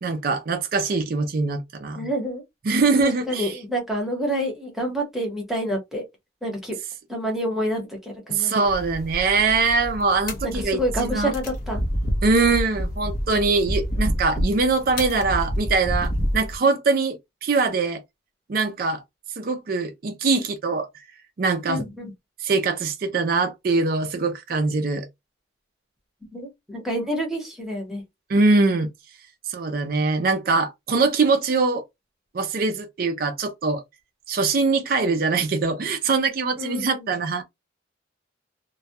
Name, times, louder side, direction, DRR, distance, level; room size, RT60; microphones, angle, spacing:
voice 1, 0.0-2.1 2.6-3.6 8.3-11.3 12.2-18.0 18.5-19.0 19.4-20.9 21.4-21.8 22.4-25.1 28.3-28.9 29.5-31.8 32.3-33.8 34.3-37.4, right 4 dB, 50° right, 0.4 m, -22 dB
voice 2, 1.9-2.4 3.0-6.0 6.4-6.8 7.1-8.5 10.4-11.8 21.7-22.1 26.3-28.0 36.6-37.1, equal, ahead, 0.8 m, -28 dB
sound 1, 8.7-16.6, equal, 50° left, 0.6 m, -28 dB
2.2 x 2.1 x 2.7 m
head